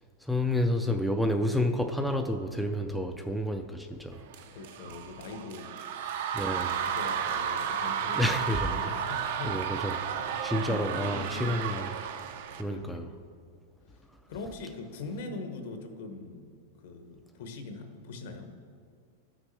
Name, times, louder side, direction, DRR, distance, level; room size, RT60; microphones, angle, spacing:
voice 1, 0.2-4.2 6.3-6.8 8.2-8.9 9.4-9.9 10.4-11.9 12.6-13.0, left 1 dB, ahead, 5 dB, 0.3 m, -29 dB
sound 1, 4.3-12.6, right 8 dB, 60° right, 0.5 m, -33 dB
voice 2, 4.5-6.4 6.8-9.7 10.5-11.8 12.7-13.2 13.9-14.0 14.3-16.5 16.8-18.5, left 3 dB, 65° left, 5 dB, 1.0 m, -42 dB
12.0 x 6.0 x 3.3 m, 2.1 s
supercardioid pair, 155°, 0 cm